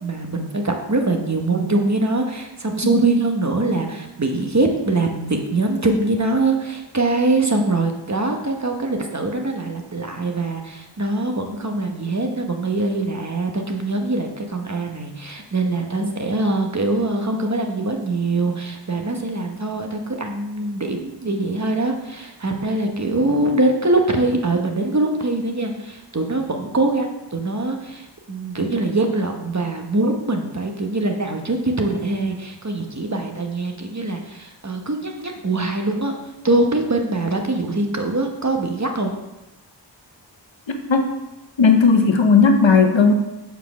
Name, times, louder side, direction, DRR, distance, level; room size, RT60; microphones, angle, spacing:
voice 1, 0.0-36.1 36.4-39.1, right 2 dB, 40° right, 3 dB, 1.1 m, -23 dB
voice 2, 41.6-43.1, left 5 dB, 85° left, 5 dB, 0.9 m, -14 dB
5.8 x 4.6 x 6.0 m, 0.98 s
wide cardioid pair, 45°, 44 cm